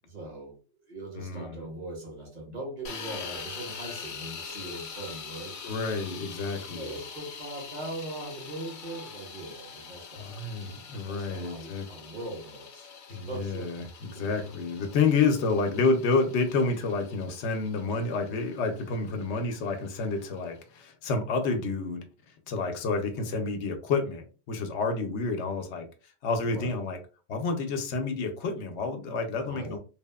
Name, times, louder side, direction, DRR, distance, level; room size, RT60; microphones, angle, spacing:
voice 1, 0.0-5.6 6.5-10.4 11.1-13.7 14.1-14.5 26.4-26.8 29.3-29.8, right 2 dB, 40° right, 0.9 m, -41 dB
voice 2, 1.2-1.6 5.6-6.9 10.2-11.9 13.1-22.1 22.5-25.9 26.2-27.0 27.3-29.8, left 4 dB, 90° left, 0.9 m, -29 dB
sound 1, 2.8-20.8, left 6 dB, 60° left, 0.6 m, -44 dB
3.0 x 2.0 x 2.2 m
omnidirectional pair, 1.1 m